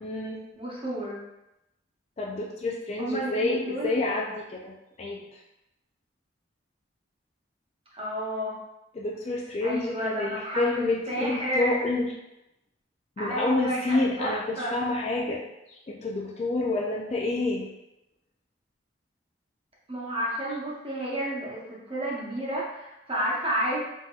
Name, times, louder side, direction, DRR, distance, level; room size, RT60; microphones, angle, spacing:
voice 1, 0.0-0.4 2.2-5.4 8.9-12.1 13.2-15.4 15.7-17.7, left 2 dB, 35° left, -2 dB, 0.3 m, -29 dB
voice 2, 0.6-1.2 3.0-3.9 7.9-8.6 9.6-11.8 13.2-14.7 19.9-23.9, right 1 dB, 30° right, -6 dB, 0.9 m, -31 dB
3.7 x 2.7 x 2.3 m, 0.91 s
head